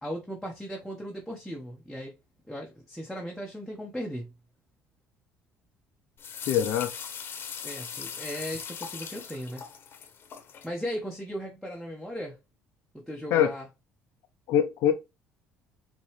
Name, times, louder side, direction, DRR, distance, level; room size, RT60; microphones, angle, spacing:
voice 1, 0.0-2.1 2.4-4.3 7.6-9.7 10.6-12.4 12.9-13.7, equal, ahead, 1.2 m, -37 dB
sound 1, 6.2-10.7, left 7 dB, 45° left, 1.1 m, -39 dB
voice 2, 6.5-6.9 13.3-13.5 14.5-14.9, left 9 dB, 70° left, 0.6 m, -23 dB
5.2 x 3.0 x 3.2 m
supercardioid pair, 95°, 5 cm